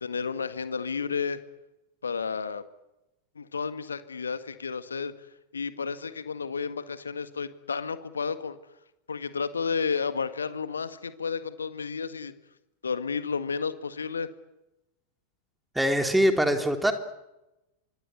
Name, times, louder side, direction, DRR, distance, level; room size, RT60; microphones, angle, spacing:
voice 1, 0.0-1.4 2.0-2.6 3.3-5.3 5.5-8.6 9.1-12.3 12.8-14.3, left 5 dB, 75° left, 12 dB, 1.7 m, -32 dB
voice 2, 15.8-16.9, equal, 5° right, 6 dB, 3.5 m, -23 dB
28.0 x 25.0 x 8.5 m, 0.95 s
figure-of-eight pair, 90°, 0 cm